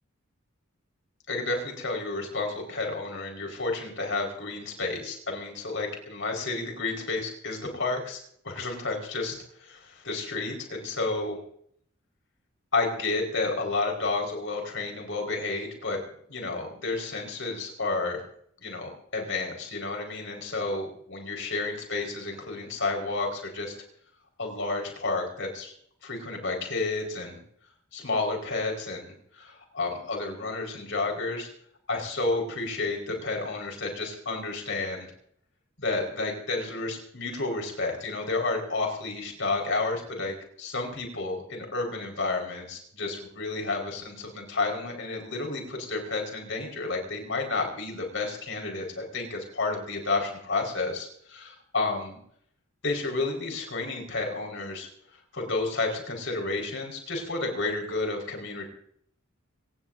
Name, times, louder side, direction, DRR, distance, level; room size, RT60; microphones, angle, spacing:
voice 1, 1.3-8.2 8.4-11.4 12.7-16.0 16.3-18.2 18.6-23.7 24.4-25.7 26.0-27.4 27.9-29.0 29.3-31.5 31.9-35.1 35.8-52.2 52.8-54.9 55.3-58.6, left 3 dB, 60° left, 2 dB, 4.9 m, -31 dB
26.0 x 18.5 x 2.7 m, 0.65 s
head